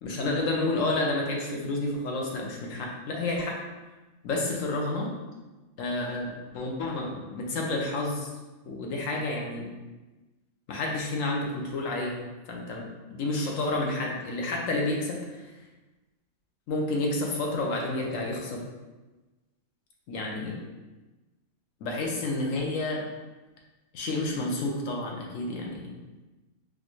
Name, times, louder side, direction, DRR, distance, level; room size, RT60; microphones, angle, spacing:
voice 1, 0.0-3.6 4.2-5.1 5.8-8.3 8.7-9.7 10.7-12.2 12.5-15.4 16.7-18.6 20.1-20.6 21.8-23.1 23.9-25.9, left 2 dB, 70° left, -1 dB, 1.0 m, -30 dB
3.9 x 2.6 x 3.0 m, 1.1 s
omnidirectional pair, 1.5 m